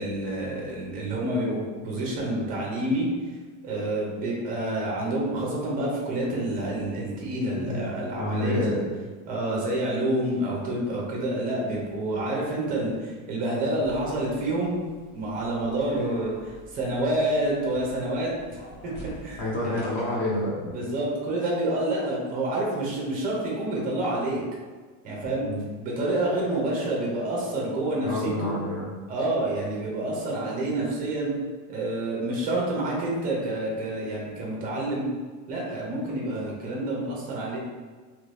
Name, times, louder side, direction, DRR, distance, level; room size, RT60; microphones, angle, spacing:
voice 1, 0.0-3.1 3.6-8.8 9.3-14.9 15.1-18.9 19.2-19.8 20.7-24.4 25.0-25.5 25.8-28.5 29.1-31.3 31.7-35.1 35.5-37.6, right 1 dB, 20° right, -3 dB, 0.5 m, -28 dB
voice 2, 7.5-7.9 8.2-8.9 19.4-20.7 25.2-25.6 28.0-28.9, left 1 dB, 25° left, -5 dB, 0.8 m, -29 dB
sound 1, 13.8-20.4, equal, 55° left, 1.3 m, -47 dB
3.0 x 2.6 x 3.3 m, 1.4 s
cardioid pair, 175°, 44 cm